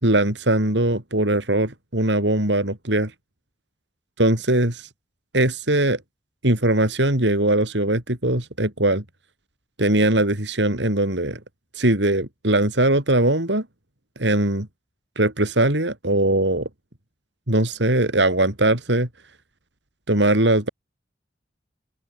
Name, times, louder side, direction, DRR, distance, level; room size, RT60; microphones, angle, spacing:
voice 1, 0.0-3.1 4.2-4.9 5.3-6.0 6.4-9.0 9.8-11.4 11.7-13.6 14.2-14.7 15.2-16.7 17.5-19.1 20.1-20.7, right 1 dB, 85° right, 4.7 m, -20 dB
open air
head